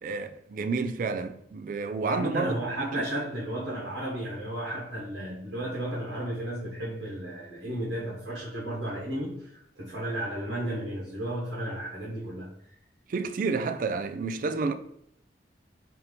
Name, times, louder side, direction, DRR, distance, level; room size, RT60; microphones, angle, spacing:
voice 1, 0.0-3.0 13.1-14.7, right 4 dB, 50° right, 0.3 m, -30 dB
voice 2, 2.0-12.5, right 1 dB, 80° right, 1.2 m, -33 dB
3.8 x 2.8 x 3.3 m
head